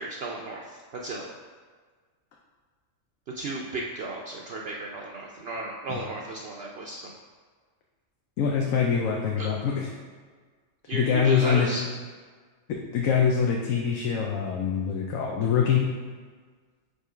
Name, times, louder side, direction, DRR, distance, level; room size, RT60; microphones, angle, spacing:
voice 1, 0.0-1.3 3.3-7.1 9.4-9.5 10.9-11.8, right 2 dB, 60° right, -1 dB, 0.7 m, -34 dB
voice 2, 8.4-9.9 10.9-11.7 12.9-15.8, left 7 dB, 80° left, -1 dB, 1.1 m, -24 dB
5.3 x 4.2 x 4.8 m, 1.5 s
omnidirectional pair, 1.4 m